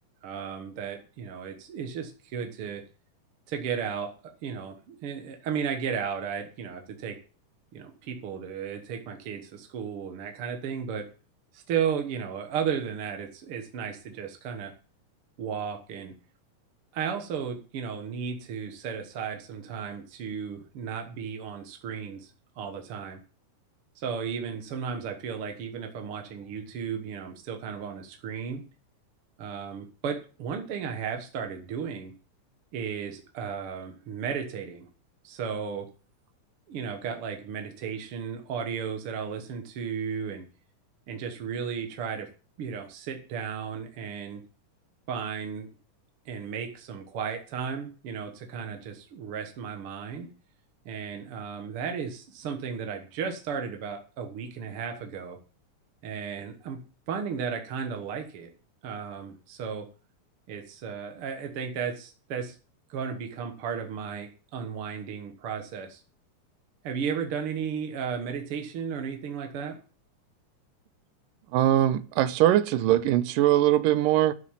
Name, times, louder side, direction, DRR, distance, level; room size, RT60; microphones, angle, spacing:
voice 1, 0.2-2.8 3.5-4.1 4.4-7.2 7.7-11.0 11.5-14.7 15.4-16.2 16.9-22.3 22.6-23.2 24.0-28.6 29.4-32.1 32.7-34.9 35.2-35.9 36.7-40.5 41.1-42.3 42.6-44.4 45.1-45.7 46.3-50.3 50.9-55.4 56.0-56.8 57.1-58.5 58.8-59.9 60.5-62.6 62.9-66.0 66.8-69.8, right 7 dB, 55° right, 1.8 m, -34 dB
voice 2, 71.5-74.3, right 13 dB, 85° right, 2.5 m, -22 dB
12.5 x 7.6 x 7.3 m
omnidirectional pair, 3.8 m